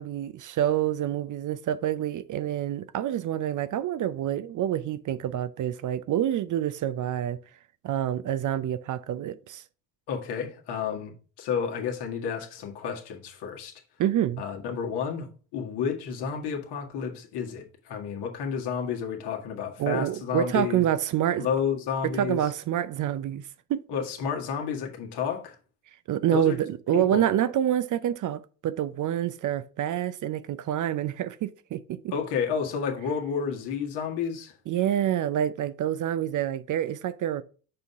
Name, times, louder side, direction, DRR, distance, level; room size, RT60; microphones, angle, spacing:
voice 1, 0.0-7.4 7.8-9.6 14.0-14.4 19.8-21.5 22.2-23.8 26.1-32.1 34.7-37.4, right 11 dB, 45° right, 0.6 m, -27 dB
voice 2, 10.1-11.1 11.4-13.8 14.4-20.8 21.4-22.5 23.9-25.6 26.3-26.6 26.9-27.2 32.1-34.5, left 7 dB, 60° left, 1.9 m, -31 dB
6.8 x 5.4 x 3.5 m
hypercardioid pair, 60°, 45 cm